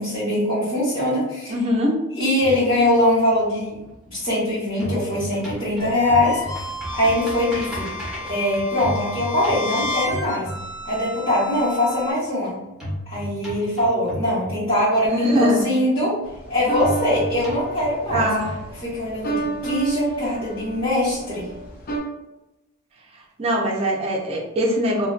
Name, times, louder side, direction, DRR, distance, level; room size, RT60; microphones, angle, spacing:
voice 1, 0.0-1.6 2.1-3.8 4.1-6.6 6.9-7.9 8.2-10.5 10.8-12.6 13.1-16.2 16.5-18.3 18.8-21.4, left 1 dB, 25° left, -16 dB, 1.1 m, -22 dB
voice 2, 1.5-2.0 15.1-15.7 18.1-18.5 23.4-25.1, equal, 30° right, -2 dB, 0.4 m, -21 dB
sound 1, 2.4-4.4 4.7-11.1 12.8-15.1 16.8-19.1, equal, 5° right, 0.8 m, -34 dB
sound 2, 5.8-12.1, left 2 dB, 85° left, 1.0 m, -32 dB
sound 3, 16.3-22.0, right 3 dB, 45° left, 0.4 m, -31 dB
2.4 x 2.1 x 2.4 m, 0.97 s
head